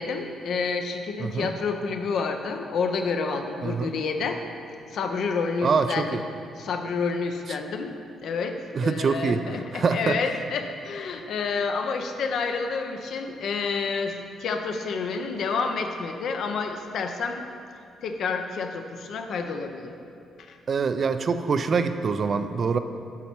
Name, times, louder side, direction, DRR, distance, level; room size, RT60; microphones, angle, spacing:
voice 1, 0.0-4.4 4.9-6.2 6.6-7.9 8.2-14.1 14.4-17.4 18.0-19.9 20.5-20.6, left 4 dB, 70° left, 5 dB, 0.6 m, -29 dB
voice 2, 5.6-6.2 7.5-7.6 8.7-10.2 20.7-22.8, right 5 dB, 45° right, 10 dB, 0.4 m, -25 dB
7.3 x 5.5 x 4.4 m, 2.5 s
cardioid pair, 90°, 0 cm